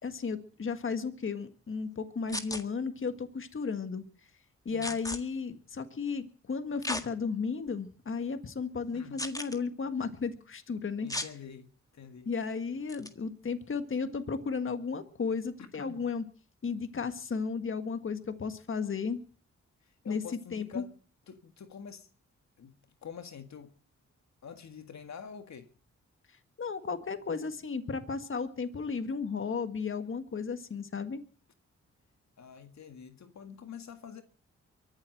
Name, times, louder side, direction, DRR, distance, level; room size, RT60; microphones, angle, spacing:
voice 1, 0.0-4.0 4.7-11.1 12.3-16.2 16.6-19.2 20.1-20.2 20.5-20.8 26.6-31.2, left 5 dB, 45° left, 1.7 m, -34 dB
sound 1, 2.3-2.6 4.8-5.2 6.8-7.1 7.7-7.8 9.2-9.6 11.1-11.3 12.9-13.1, left 1 dB, 10° left, 1.7 m, -35 dB
voice 2, 4.7-5.0 8.9-9.2 11.0-11.7 11.9-12.3 15.6-16.1 19.8-21.0 21.3-22.1 22.6-22.7 23.0-23.7 24.4-25.7 32.4-34.2, left 7 dB, 70° left, 1.8 m, -46 dB
23.5 x 8.0 x 7.8 m
cardioid pair, 90°, 29 cm